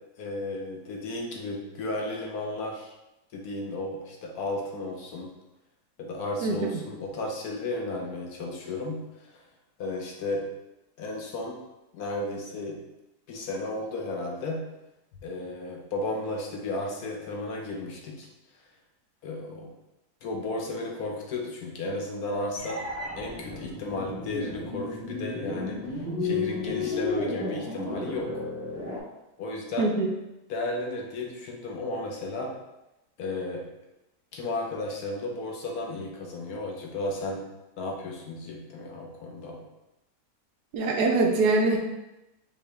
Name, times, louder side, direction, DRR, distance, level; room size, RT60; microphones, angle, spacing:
voice 1, 0.2-2.9 3.3-5.3 6.0-9.3 9.8-10.4 11.0-11.6 11.9-12.8 13.3-14.6 15.2-18.3 19.2-19.7 20.2-22.8 23.2-28.4 29.4-29.9 30.5-32.5 33.2-33.6 34.3-37.4 37.8-39.6, left 2 dB, 70° left, 0 dB, 1.2 m, -34 dB
voice 2, 6.4-6.8 29.8-30.1 40.7-41.8, right 3 dB, 75° right, 2 dB, 1.1 m, -23 dB
sound 1, 22.6-29.0, left 3 dB, 15° right, 0.7 m, -33 dB
4.6 x 3.0 x 3.3 m, 0.94 s
omnidirectional pair, 1.8 m